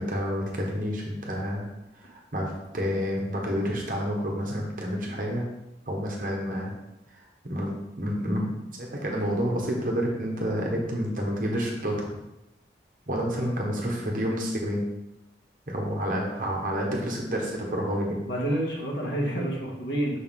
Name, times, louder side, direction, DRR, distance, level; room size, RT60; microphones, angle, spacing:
voice 1, 0.0-1.6 2.1-5.5 5.9-6.7 7.4-7.7 8.0-8.5 8.8-12.1 13.1-14.8 15.7-18.2, equal, 50° right, -1 dB, 1.2 m, -29 dB
voice 2, 18.3-20.2, right 1 dB, 80° left, -3 dB, 1.6 m, -28 dB
6.3 x 4.6 x 3.7 m, 0.92 s
head